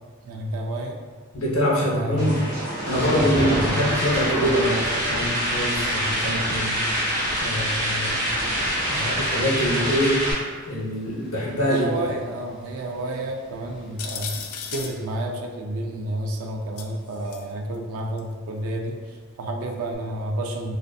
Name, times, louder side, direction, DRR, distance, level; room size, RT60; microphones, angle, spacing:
voice 1, 0.2-1.0 1.8-2.4 2.9-4.0 11.2-11.3 11.7-14.4 14.7-20.8, right 1 dB, 75° right, 2 dB, 0.3 m, -30 dB
voice 2, 1.3-2.4 2.9-6.8 7.4-8.3 8.9-10.2 10.7-11.9, equal, 70° left, -4 dB, 0.7 m, -24 dB
sound 1, 2.2-10.3, equal, 40° right, 0.8 m, -26 dB
Thunder / Rain, 2.4-15.2, equal, ahead, 0.4 m, -38 dB
sound 2, 14.0-15.0 16.8-17.4 18.2-18.3 19.9-20.0, left 7 dB, 90° left, 0.3 m, -35 dB
2.5 x 2.4 x 2.2 m, 1.5 s
head